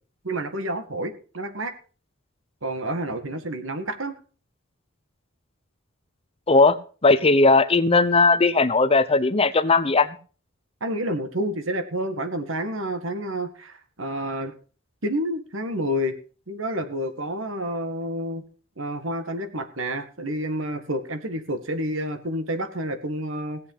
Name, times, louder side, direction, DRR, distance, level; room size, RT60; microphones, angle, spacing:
voice 1, 0.2-1.7 2.6-4.2 10.8-14.5 15.0-16.2 16.5-18.4 18.8-23.6, right 1 dB, 70° right, 2.0 m, -29 dB
voice 2, 6.5-10.1, left 3 dB, 30° left, 0.8 m, -18 dB
17.0 x 8.1 x 5.7 m
head